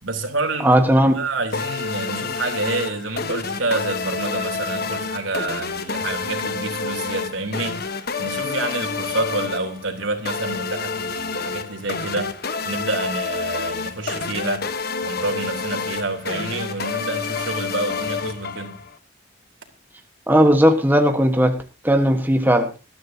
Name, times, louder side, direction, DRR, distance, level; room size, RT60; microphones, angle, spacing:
voice 1, 0.0-0.7 1.1-12.3 12.6-14.6 15.0-18.8, right 2 dB, 85° right, 5 dB, 3.4 m, -28 dB
voice 2, 0.6-1.2 20.3-21.6 21.8-22.7, equal, 10° right, 5 dB, 1.4 m, -16 dB
sound 1, 1.5-19.0, left 4 dB, 55° left, 1.2 m, -28 dB
20.5 x 13.0 x 2.8 m, 0.30 s
head